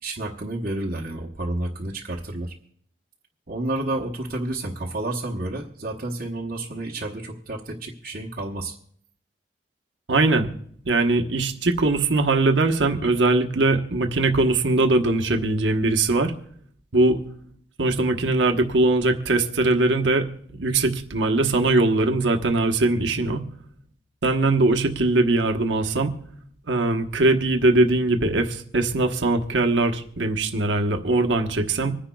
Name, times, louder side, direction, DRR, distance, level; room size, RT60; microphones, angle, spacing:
voice 1, 0.0-2.5 3.5-8.8, right 2 dB, 50° right, -3 dB, 1.0 m, -30 dB
voice 2, 10.1-10.5 10.8-16.3 16.9-17.2 17.8-23.4 24.2-26.1 26.7-32.0, right 2 dB, 85° right, 5 dB, 1.1 m, -21 dB
26.0 x 10.0 x 2.3 m, 0.62 s
head